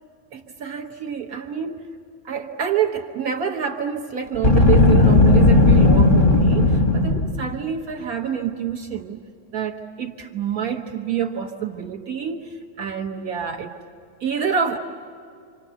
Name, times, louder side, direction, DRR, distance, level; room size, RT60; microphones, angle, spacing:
voice 1, 0.3-1.9 2.2-9.2 9.5-13.7 14.2-14.8, right 8 dB, 75° right, 1 dB, 0.8 m, -27 dB
Boom, 4.4-7.5, left 3 dB, 40° left, 0.7 m, -15 dB
29.5 x 26.0 x 7.0 m, 2.4 s
omnidirectional pair, 3.3 m